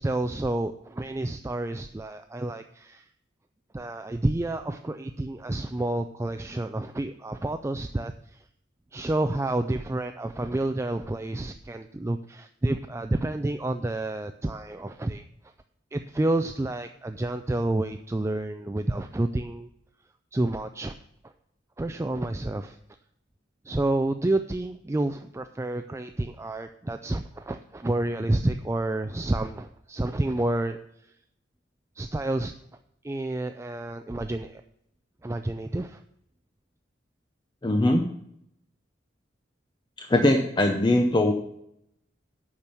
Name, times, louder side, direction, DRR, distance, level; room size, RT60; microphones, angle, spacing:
voice 1, 0.0-3.1 3.7-8.1 8.9-15.2 15.9-19.7 20.3-20.9 21.8-22.8 23.7-30.8 32.0-32.5 33.0-34.6 35.2-36.0, right 2 dB, 15° right, 7 dB, 0.3 m, -29 dB
voice 2, 37.6-38.0 40.0-41.3, left 1 dB, 25° left, 3 dB, 0.7 m, -21 dB
8.7 x 6.1 x 6.9 m, 0.75 s
head